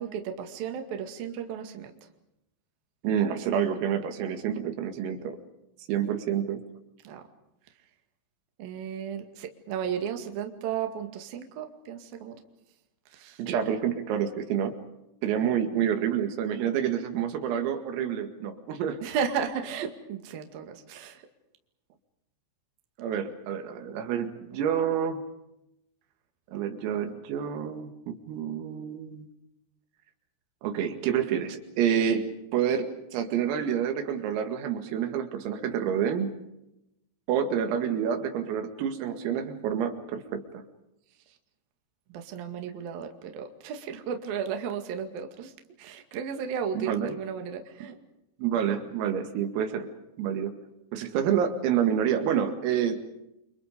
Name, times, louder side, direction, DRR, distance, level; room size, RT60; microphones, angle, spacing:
voice 1, 0.0-1.9 7.0-7.2 8.6-12.4 13.1-13.4 19.0-21.2 42.1-45.5 45.8-48.0, right 7 dB, 55° right, 5 dB, 3.4 m, -34 dB
voice 2, 3.0-5.4 5.9-6.6 13.4-14.7 15.2-19.0 23.0-25.3 26.5-29.3 30.6-36.3 37.3-40.6 46.8-47.1 48.4-49.9 50.2-50.5 50.9-53.0, right 8 dB, 80° right, 7 dB, 4.7 m, -28 dB
30.0 x 26.0 x 5.2 m, 0.85 s
omnidirectional pair, 6.0 m